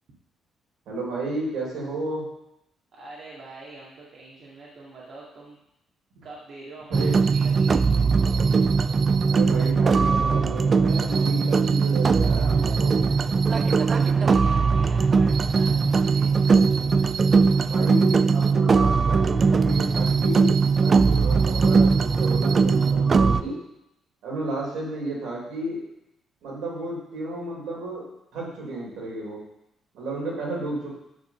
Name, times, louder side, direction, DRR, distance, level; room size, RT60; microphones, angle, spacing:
voice 1, 0.9-2.2 6.9-7.1 9.3-13.1 17.5-23.6 24.2-25.8 26.4-28.1 28.3-29.4 29.9-30.9, right 2 dB, 80° right, -3 dB, 3.6 m, -32 dB
voice 2, 2.9-5.6 6.2-7.9 14.1-16.3, right 2 dB, 65° right, -6 dB, 1.9 m, -44 dB
sound 1, 6.9-23.4, right 5 dB, 40° right, 0.4 m, -20 dB
9.3 x 3.9 x 7.1 m, 0.84 s
cardioid pair, 90°, 0 cm